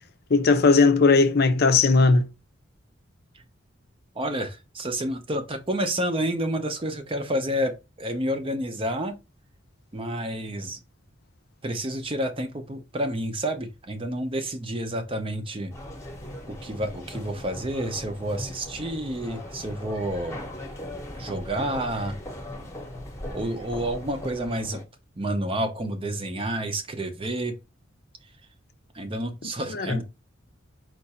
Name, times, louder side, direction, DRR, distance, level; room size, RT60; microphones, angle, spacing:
voice 1, 0.3-2.3 29.7-30.0, left 4 dB, 50° left, 0.6 m, -18 dB
voice 2, 4.2-9.1 9.9-10.8 11.6-15.7 16.5-20.4 21.2-22.2 23.3-24.8 25.2-27.6 28.9-30.0, right 1 dB, 25° right, 0.6 m, -29 dB
sound 1, 15.7-24.8, left 1 dB, 15° left, 0.9 m, -39 dB
4.6 x 2.5 x 4.1 m
head